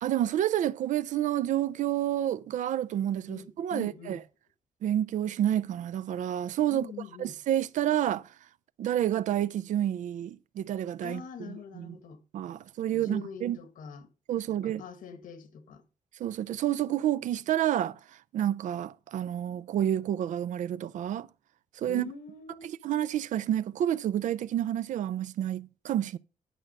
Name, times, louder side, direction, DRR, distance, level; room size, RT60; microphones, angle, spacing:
voice 1, 0.0-4.2 4.8-6.9 7.2-8.3 8.8-11.2 11.5-11.9 12.3-13.6 14.3-14.8 16.2-18.0 18.3-21.3 21.8-22.1 22.8-26.2, right 11 dB, 65° right, 0.5 m, -29 dB
voice 2, 3.3-4.2 6.7-7.4 11.0-12.2 12.9-14.1 14.5-15.9 21.9-22.6, left 6 dB, 75° left, 1.5 m, -44 dB
11.0 x 6.2 x 5.4 m
wide cardioid pair, 170°, 14 cm